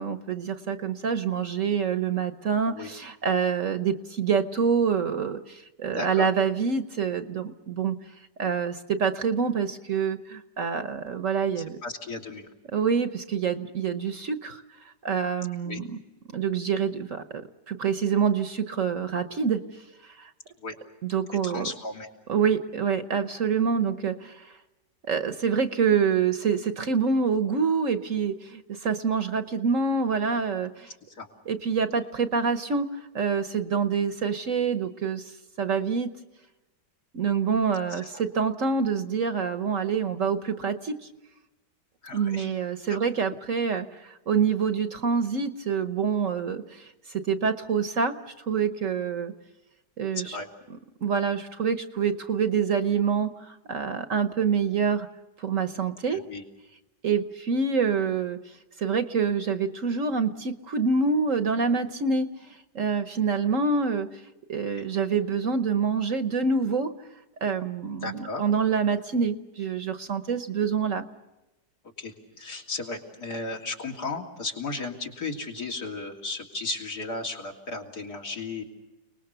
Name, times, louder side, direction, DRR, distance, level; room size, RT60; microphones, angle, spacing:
voice 1, 0.0-7.9 8.4-11.8 12.7-14.6 15.0-15.9 16.3-17.2 17.7-19.6 20.2-20.3 21.0-21.7 22.3-24.5 25.1-30.9 31.5-32.9 33.1-35.3 35.6-36.1 37.1-41.1 42.1-46.9 47.1-48.2 48.5-49.3 50.0-50.4 51.0-55.1 55.4-56.2 57.0-58.4 58.8-62.3 62.7-64.1 64.5-66.9 67.4-71.0, right 6 dB, 50° right, 10 dB, 1.2 m, -26 dB
voice 2, 5.8-6.3 11.6-12.5 15.7-15.8 20.6-20.8 21.4-22.1 31.1-31.3 37.9-38.1 42.0-42.5 42.9-43.0 50.2-50.5 56.1-56.4 64.7-64.9 68.0-68.4 72.0-78.6, left 3 dB, 65° left, 1 dB, 3.6 m, -35 dB
30.0 x 20.0 x 6.8 m, 1.0 s
omnidirectional pair, 1.9 m